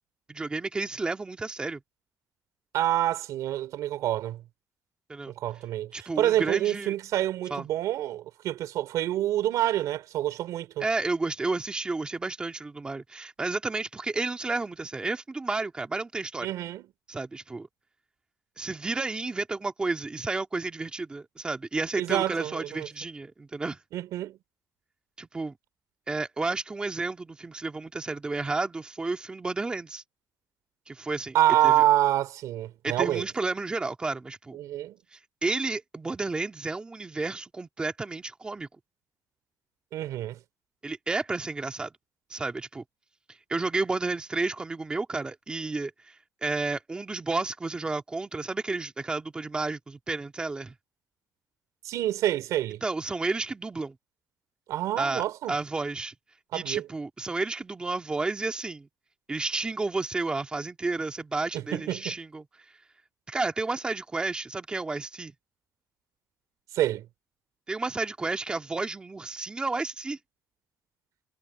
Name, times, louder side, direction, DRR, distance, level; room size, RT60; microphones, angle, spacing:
voice 1, 0.3-1.8 5.1-5.3 5.9-6.9 7.5-7.7 10.8-16.5 17.1-17.7 18.6-23.8 25.2-25.6 26.1-30.0 30.9-31.4 31.6-31.8 32.8-34.6 35.1-38.7 40.8-41.9 42.3-42.8 43.5-50.7 52.8-54.0 55.0-56.1 56.5-58.9 59.3-62.5 63.3-65.3 67.7-70.2, right 3 dB, 15° right, 2.2 m, -31 dB
voice 2, 2.7-4.4 5.3-10.8 16.4-16.9 21.9-22.9 23.9-24.4 31.3-33.2 34.5-35.0 39.9-40.4 51.8-52.8 54.7-55.5 56.5-56.9 61.5-62.1 66.7-67.0, right 13 dB, 75° right, 3.2 m, -27 dB
cardioid pair, 155°, 6 cm